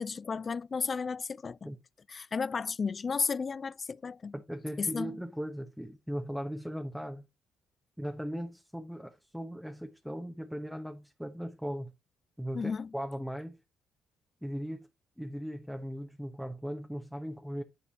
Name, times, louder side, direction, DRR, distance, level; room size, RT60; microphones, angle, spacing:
voice 1, 0.0-1.7 2.1-4.3 4.8-5.2 12.5-12.9, left 5 dB, 40° left, 0.3 m, -33 dB
voice 2, 4.3-7.3 8.0-11.9 12.4-13.6 14.4-14.9 15.2-17.6, equal, ahead, 1.0 m, -38 dB
10.0 x 4.1 x 4.0 m
supercardioid pair, 70°, 0 cm